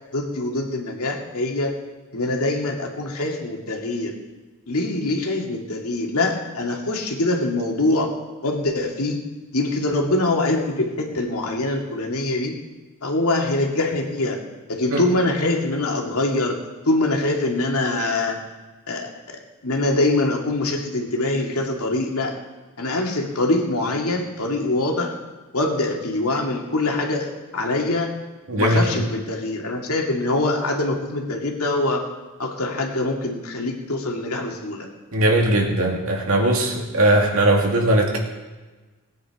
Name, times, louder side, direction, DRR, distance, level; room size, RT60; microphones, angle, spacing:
voice 1, 0.1-1.7 2.1-4.1 4.7-8.1 8.4-9.2 9.5-12.5 13.0-14.4 14.7-16.5 16.9-18.4 18.9-22.3 22.8-25.1 25.5-28.1 28.5-32.0 32.4-34.9, left 2 dB, 85° left, 1 dB, 2.3 m, -24 dB
voice 2, 28.5-29.0 35.1-38.2, right 1 dB, 70° right, 0 dB, 2.6 m, -19 dB
19.0 x 9.3 x 4.9 m, 1.2 s
head